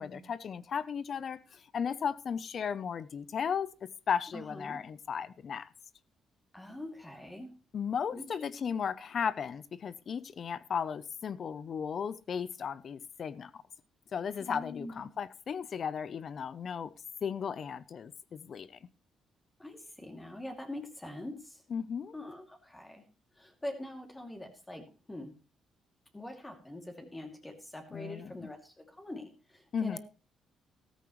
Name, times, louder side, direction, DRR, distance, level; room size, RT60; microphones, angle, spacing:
voice 1, 0.0-5.7 7.7-13.6 14.1-16.9 17.2-18.7 21.7-22.1 27.9-28.5 29.7-30.0, left 7 dB, 55° left, 0.6 m, -35 dB
voice 2, 4.3-4.8 6.5-7.5 8.1-8.2 14.4-14.9 19.6-21.6 22.1-23.0 23.4-25.3 26.1-30.0, left 1 dB, 15° left, 2.5 m, -44 dB
13.5 x 13.0 x 3.1 m
cardioid pair, 90°, 0 cm